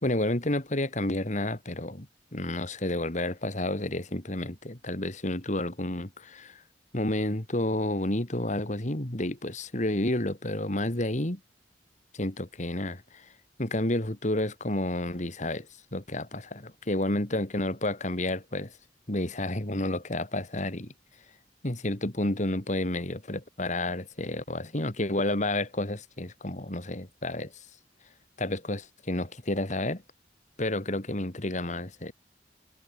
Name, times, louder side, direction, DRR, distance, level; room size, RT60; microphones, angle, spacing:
voice 1, 0.0-6.6 6.9-11.4 12.1-13.3 13.6-15.7 15.9-18.7 19.1-20.9 21.6-27.7 28.4-30.0 30.6-32.1, left 1 dB, 40° left, 2.6 m, -30 dB
head